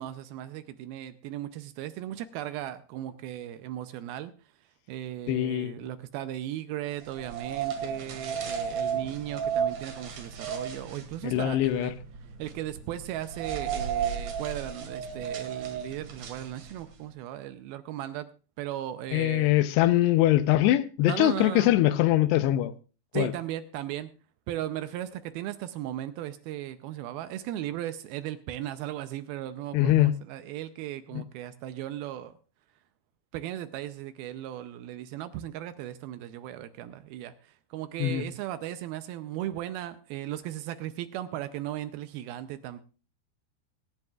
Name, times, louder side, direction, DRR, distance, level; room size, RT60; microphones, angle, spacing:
voice 1, 0.0-4.3 4.9-12.0 12.4-18.3 18.6-19.6 21.0-21.7 23.1-24.1 24.5-32.3 33.3-42.8, right 12 dB, 80° right, 11 dB, 2.4 m, -37 dB
voice 2, 5.3-5.8 11.2-11.9 19.1-22.7 23.1-23.3 29.7-30.1 31.1-31.2 38.0-38.2, left 14 dB, 85° left, 13 dB, 2.8 m, -23 dB
sound 1, 7.0-17.0, right 7 dB, 50° right, 2.6 m, -34 dB
23.0 x 10.5 x 2.4 m, 0.34 s
omnidirectional pair, 4.7 m